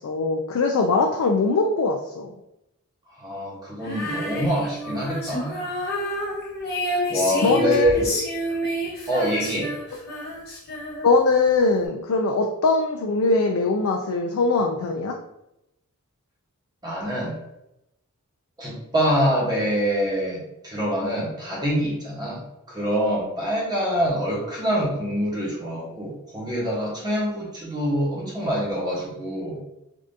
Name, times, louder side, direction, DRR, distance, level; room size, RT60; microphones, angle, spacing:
voice 1, 0.0-2.3 7.4-8.2 11.0-15.1, left 3 dB, 65° left, 2 dB, 0.3 m, -21 dB
voice 2, 3.2-5.7 7.1-8.1 9.1-9.7 16.8-17.4 18.6-29.6, equal, 20° right, -5 dB, 1.0 m, -25 dB
Female singing, 3.8-11.3, equal, 45° left, 0.9 m, -29 dB
3.5 x 2.5 x 2.6 m, 0.86 s
head